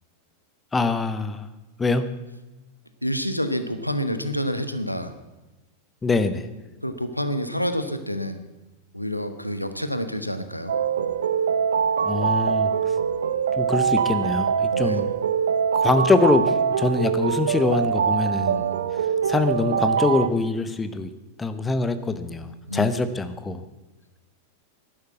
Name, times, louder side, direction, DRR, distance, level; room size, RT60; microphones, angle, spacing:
voice 1, 0.7-1.5 1.8-2.1 6.0-6.5 12.0-12.7 13.6-15.1 15.7-18.7 19.3-21.1 21.4-23.6, left 3 dB, 15° left, 11 dB, 1.0 m, -24 dB
voice 2, 3.0-5.1 6.8-8.4 8.9-10.7 14.7-15.0 18.4-18.9 22.7-22.9, equal, 90° left, 10 dB, 1.0 m, -28 dB
sound 1, 10.7-20.3, right 7 dB, 65° right, 0.8 m, -23 dB
11.5 x 10.5 x 8.0 m, 1.1 s
figure-of-eight pair, 90°, 0 cm